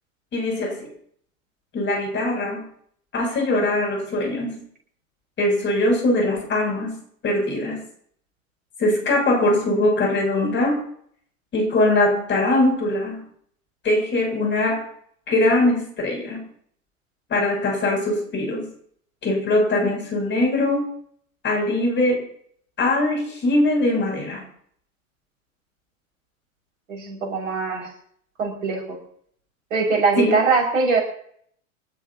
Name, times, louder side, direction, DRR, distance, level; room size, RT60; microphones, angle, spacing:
voice 1, 0.3-0.9 1.7-2.7 3.1-4.6 5.4-7.8 8.8-10.8 11.5-13.3 13.8-14.9 15.3-16.5 17.3-18.7 19.2-20.9 21.4-22.3 22.8-24.4 30.2-30.4, left 1 dB, 25° left, 2 dB, 7.4 m, -21 dB
voice 2, 26.9-27.9 28.4-29.0 29.7-31.0, right 4 dB, 65° right, 1 dB, 5.8 m, -22 dB
27.5 x 12.5 x 2.9 m, 0.62 s
figure-of-eight pair, 95°, 42 cm